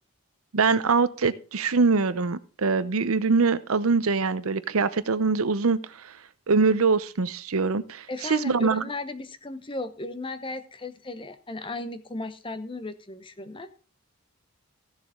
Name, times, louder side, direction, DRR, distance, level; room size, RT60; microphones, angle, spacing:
voice 1, 0.5-6.1 6.5-8.9, right 4 dB, 75° right, 14 dB, 0.7 m, -23 dB
voice 2, 8.1-13.7, left 2 dB, 20° left, 11 dB, 0.8 m, -35 dB
15.0 x 7.1 x 3.7 m, 0.37 s
head